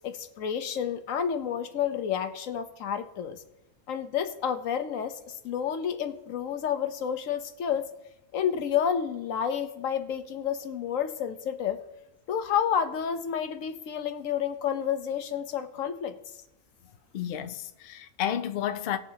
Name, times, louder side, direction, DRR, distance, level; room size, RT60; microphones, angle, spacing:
voice 1, 0.0-3.4 3.9-7.8 8.3-11.8 12.3-16.1, left 8 dB, 80° left, 1.2 m, -30 dB
voice 2, 17.1-19.0, left 10 dB, 55° left, 0.7 m, -31 dB
19.0 x 7.0 x 2.8 m
omnidirectional pair, 1.3 m